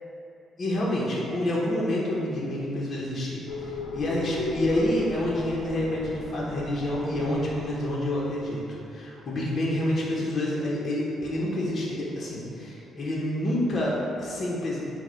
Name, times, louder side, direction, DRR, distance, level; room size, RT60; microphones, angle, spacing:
voice 1, 0.6-14.8, left 1 dB, 45° left, -5 dB, 0.8 m, -28 dB
sound 1, 3.5-8.3, left 3 dB, 85° left, 0.5 m, -35 dB
4.6 x 2.1 x 4.4 m, 2.7 s
cardioid pair, 105°, 0 cm